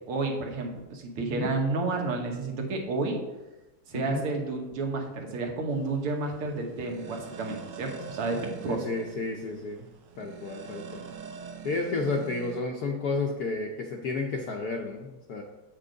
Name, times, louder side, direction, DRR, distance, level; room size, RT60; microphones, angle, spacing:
voice 1, 0.1-3.2 3.9-8.8, right 3 dB, 80° right, 1 dB, 2.1 m, -31 dB
voice 2, 1.2-1.5 3.9-4.2 8.7-9.9 10.2-11.1 11.6-15.4, left 3 dB, 70° left, 1 dB, 0.9 m, -32 dB
sound 1, 5.7-12.6, right 7 dB, 65° right, 1.2 m, -44 dB
7.7 x 5.9 x 3.9 m, 1.1 s
omnidirectional pair, 2.4 m